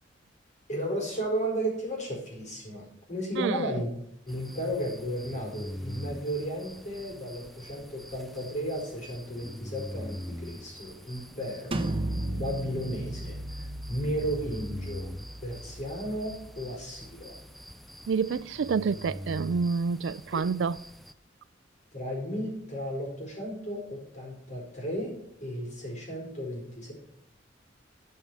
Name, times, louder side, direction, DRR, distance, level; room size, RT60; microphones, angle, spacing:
voice 1, 0.7-3.9 4.3-11.8 12.2-15.1 15.4-17.3 20.3-20.5 21.9-25.1 25.4-26.9, equal, 40° left, 4.6 m, -34 dB
sound 1, 4.3-21.1, equal, ahead, 0.4 m, -44 dB
sound 2, 11.7-17.3, right 1 dB, 30° right, 0.8 m, -36 dB
voice 2, 18.1-20.8, right 5 dB, 70° right, 0.4 m, -28 dB
15.0 x 5.6 x 4.7 m
head